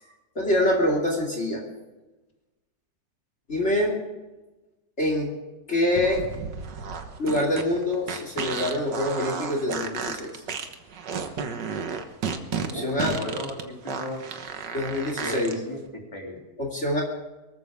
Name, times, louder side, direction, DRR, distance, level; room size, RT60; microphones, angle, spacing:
voice 1, 0.3-1.6 3.5-4.0 5.0-5.3 5.7-6.2 7.2-10.4 12.6-13.2 14.7-15.5 16.6-17.0, left 1 dB, 40° left, 0 dB, 2.9 m, -25 dB
sound 1, 5.9-15.5, right 6 dB, 80° right, 1.9 m, -32 dB
voice 2, 12.7-14.2 15.2-16.4, left 1 dB, 15° left, -1 dB, 3.1 m, -35 dB
24.0 x 14.5 x 3.6 m, 1.1 s
omnidirectional pair, 1.9 m